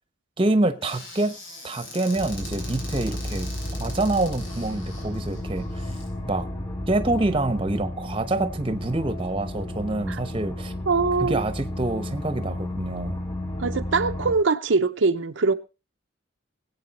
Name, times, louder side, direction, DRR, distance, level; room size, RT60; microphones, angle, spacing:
voice 1, 0.4-1.4 1.6-3.5 3.8-5.9 6.2-6.5 6.9-10.7 11.2-13.2, right 2 dB, 25° right, 1.0 m, -26 dB
Squeak / Cupboard open or close, 0.8-6.1, left 2 dB, 85° left, 5.6 m, -42 dB
sound 1, 2.2-14.3, left 1 dB, 25° left, 3.3 m, -33 dB
voice 2, 10.9-11.4 13.6-15.5, right 4 dB, 75° right, 0.7 m, -22 dB
20.0 x 8.5 x 4.1 m
head